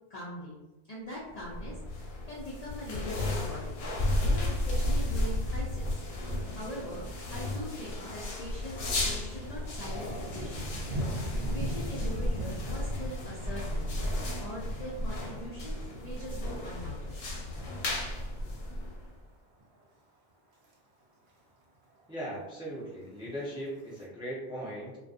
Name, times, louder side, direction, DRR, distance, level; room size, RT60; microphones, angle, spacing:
voice 1, 0.1-0.6 0.9-17.2, equal, 55° left, -7 dB, 0.5 m, -43 dB
sound 1, 1.4-19.2, left 1 dB, 70° left, 0.8 m, -33 dB
Thunder, 8.2-8.5 8.8-19.1 19.5-19.8 20.3-20.7 21.0-21.1 21.3-21.4 21.7-22.3 23.1-24.0, right 1 dB, 75° right, 0.9 m, -42 dB
voice 2, 22.1-25.0, equal, 5° right, -6 dB, 0.4 m, -38 dB
2.4 x 2.2 x 2.4 m, 1.1 s
omnidirectional pair, 1.1 m